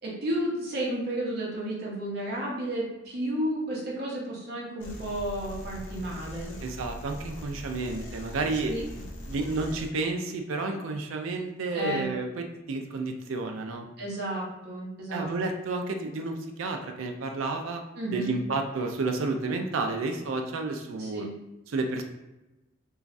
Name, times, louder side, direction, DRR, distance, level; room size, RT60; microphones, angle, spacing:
voice 1, 0.0-6.5 8.7-8.8 11.7-12.1 14.0-15.3 18.0-18.4 21.0-21.3, right 1 dB, 55° right, -4 dB, 0.9 m, -32 dB
sound 1, 4.8-9.9, equal, 70° left, 0.6 m, -41 dB
voice 2, 6.6-8.7 9.3-13.9 15.1-17.8 18.1-21.3 21.7-22.0, right 3 dB, 85° right, 4 dB, 0.4 m, -31 dB
3.0 x 2.4 x 2.5 m, 1.0 s
head